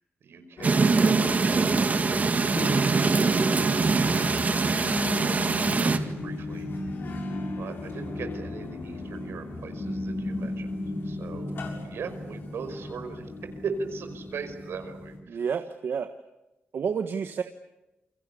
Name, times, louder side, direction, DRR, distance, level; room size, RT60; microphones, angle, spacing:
voice 1, 0.2-2.6 2.9-4.6 5.6-6.7 7.6-10.7 11.0-11.5 11.8-13.3 13.6-15.4, right 5 dB, 85° right, 8 dB, 5.1 m, -39 dB
sound 1, 0.6-15.2, left 2 dB, 65° left, 6.9 m, -35 dB
sound 2, 0.6-6.0, right 4 dB, 40° right, 2.0 m, -23 dB
voice 2, 15.3-16.1 16.7-17.4, right 6 dB, 70° right, 8 dB, 1.4 m, -29 dB
28.5 x 23.5 x 8.5 m, 0.99 s
wide cardioid pair, 115°, 4 cm